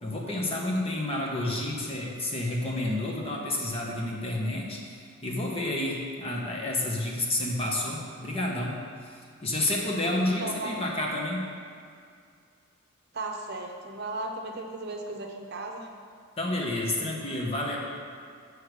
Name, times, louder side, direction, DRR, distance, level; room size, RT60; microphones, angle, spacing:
voice 1, 0.0-8.8 9.1-11.5 16.4-17.8, left 1 dB, 30° left, -2 dB, 1.1 m, -30 dB
voice 2, 10.3-10.8 13.1-15.9, right 2 dB, 50° right, 2 dB, 0.7 m, -36 dB
6.7 x 4.7 x 6.7 m, 2.3 s
head